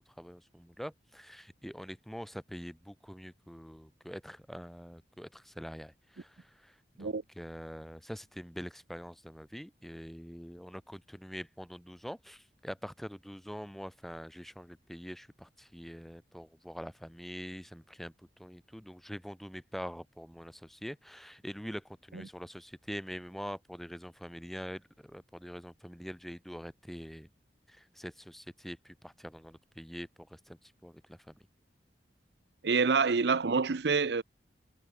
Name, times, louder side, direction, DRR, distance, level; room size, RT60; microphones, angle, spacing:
voice 1, 0.1-27.3 27.7-31.4, equal, ahead, 1.8 m, -45 dB
voice 2, 32.6-34.2, right 5 dB, 70° right, 0.7 m, -27 dB
head